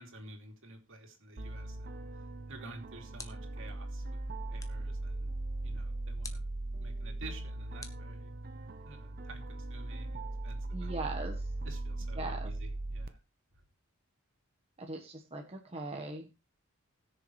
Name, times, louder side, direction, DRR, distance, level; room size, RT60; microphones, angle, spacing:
voice 1, 0.0-4.2 4.5-5.3 5.6-6.4 6.8-8.3 8.8-10.9 11.6-13.2, right 2 dB, 65° right, 3 dB, 2.8 m, -51 dB
sound 1, 1.4-13.1, right 2 dB, 45° right, 0.9 m, -39 dB
sound 2, 3.2-3.7 4.6-4.9 6.2-6.6 7.8-8.7, left 4 dB, 15° left, 1.2 m, -50 dB
voice 2, 10.7-11.4 12.2-12.5 14.8-16.3, right 2 dB, 30° right, 1 dB, 1.2 m, -40 dB
20.0 x 6.9 x 3.2 m, 0.27 s
head